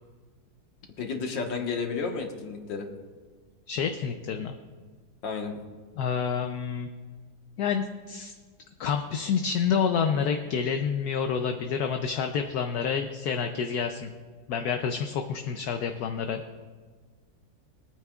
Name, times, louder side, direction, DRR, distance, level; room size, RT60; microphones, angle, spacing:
voice 1, 1.0-2.9 5.2-5.5, left 5 dB, 90° left, 2 dB, 2.1 m, -32 dB
voice 2, 3.7-4.6 6.0-6.9 7.6-8.3 8.8-14.1 14.5-16.4, left 6 dB, 65° left, 5 dB, 1.1 m, -28 dB
23.5 x 9.2 x 2.4 m, 1.5 s
omnidirectional pair, 1.9 m